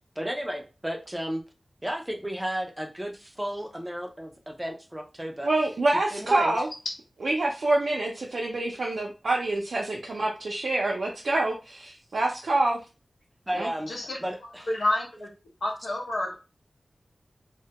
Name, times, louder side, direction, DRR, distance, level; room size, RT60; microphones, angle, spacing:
voice 1, 0.2-1.4 1.8-5.5 6.1-6.6 13.5-14.7, equal, 10° right, 3 dB, 0.4 m, -33 dB
voice 2, 5.4-6.7 7.2-11.5 12.1-12.8 13.5-13.7, right 2 dB, 85° right, -2 dB, 0.4 m, -26 dB
voice 3, 13.9-14.2 14.7-15.3 15.6-16.4, left 1 dB, 85° left, -1 dB, 0.8 m, -28 dB
2.1 x 2.1 x 2.8 m, 0.31 s
wide cardioid pair, 95°, 0 cm